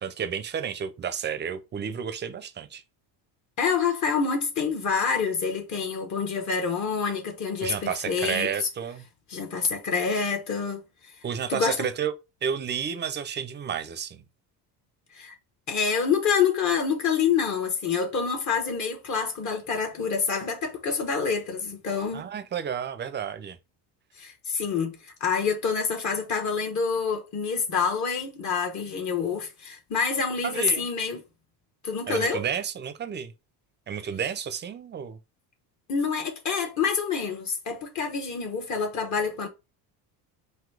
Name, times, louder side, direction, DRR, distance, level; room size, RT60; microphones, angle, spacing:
voice 1, 0.0-2.8 7.6-9.0 11.2-12.1 12.4-14.2 22.1-23.6 30.4-30.9 32.1-33.3 33.9-35.2, right 7 dB, 25° right, 0.5 m, -31 dB
voice 2, 3.6-8.7 9.3-10.8 11.5-11.9 15.1-15.4 15.7-22.3 24.2-31.2 31.8-32.4 35.9-39.5, left 6 dB, 45° left, 1.1 m, -27 dB
4.0 x 2.7 x 4.6 m
cardioid pair, 140°, 42 cm